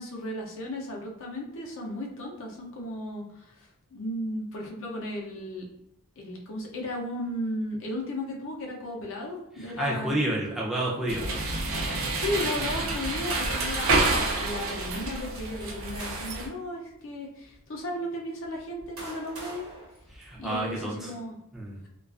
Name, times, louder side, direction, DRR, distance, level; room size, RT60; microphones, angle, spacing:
voice 1, 0.0-5.6 6.2-10.2 12.1-19.7 20.4-21.4, left 1 dB, 60° left, -1 dB, 0.5 m, -35 dB
voice 2, 9.8-11.3 20.1-21.0 21.5-21.8, right 1 dB, ahead, -6 dB, 0.4 m, -29 dB
sound 1, 11.1-16.5, right 2 dB, 60° right, 0.5 m, -28 dB
sound 2, 15.5-16.7 17.4-17.5 18.4-20.8, right 1 dB, 85° right, 0.9 m, -45 dB
2.4 x 2.3 x 2.4 m, 0.82 s
head